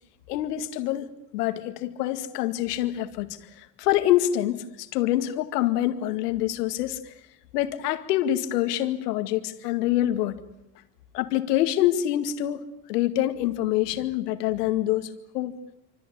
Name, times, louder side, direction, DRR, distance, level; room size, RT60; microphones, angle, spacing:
voice 1, 0.3-1.1 1.3-3.3 3.6-7.1 7.5-10.4 11.1-15.6, left 13 dB, 80° left, 2.2 m, -26 dB
27.0 x 25.5 x 7.1 m
hypercardioid pair, 60°, 47 cm